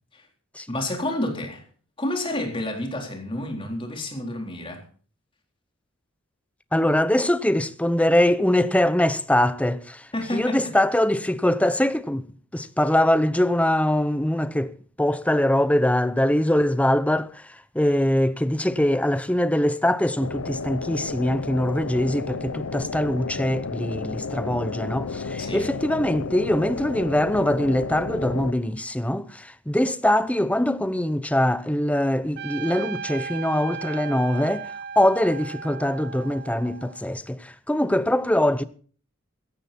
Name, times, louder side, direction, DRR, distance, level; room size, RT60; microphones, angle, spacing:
voice 1, 0.7-1.6 2.0-4.8 10.1-10.7 25.4-25.6, left 1 dB, 25° left, 3.8 m, -29 dB
voice 2, 6.7-12.3 12.5-14.7 15.0-34.7 35.0-38.6, left 1 dB, 5° left, 0.7 m, -23 dB
sound 1, 20.2-28.5, left 4 dB, 85° left, 0.9 m, -32 dB
Trumpet, 32.4-37.1, right 6 dB, 50° right, 0.6 m, -36 dB
16.5 x 14.0 x 4.2 m
head